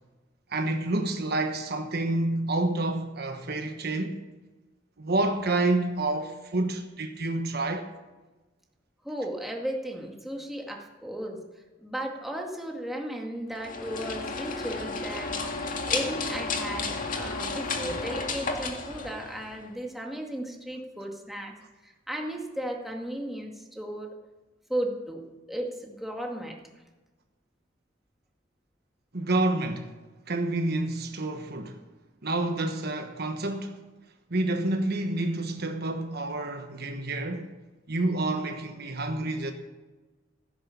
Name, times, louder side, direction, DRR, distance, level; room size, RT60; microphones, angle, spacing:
voice 1, 0.5-4.2 5.0-7.9 29.1-29.9 30.3-31.8 32.2-33.8 34.3-37.5 37.9-39.5, right 2 dB, 55° right, 1.2 m, -28 dB
voice 2, 9.0-11.4 11.8-15.4 15.9-21.6 21.8-24.1 24.7-26.6, right 1 dB, ahead, 2.0 m, -35 dB
sound 1, 13.5-19.7, left 3 dB, 45° left, 2.0 m, -32 dB
15.5 x 10.5 x 7.0 m
head